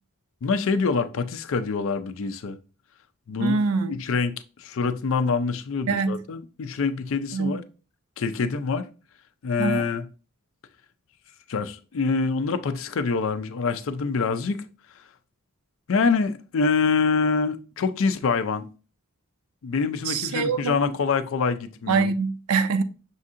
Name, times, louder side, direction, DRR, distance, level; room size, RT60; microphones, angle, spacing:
voice 1, 0.4-2.6 3.3-3.6 3.9-7.6 8.2-8.9 9.4-10.1 11.5-14.6 14.9-15.1 15.9-18.7 19.6-22.1, left 4 dB, 60° left, 0.4 m, -25 dB
voice 2, 3.4-3.9 5.9-6.2 7.3-7.5 9.6-9.9 20.1-20.8 21.9-22.8, right 4 dB, 75° right, 0.4 m, -24 dB
6.3 x 2.7 x 2.5 m
head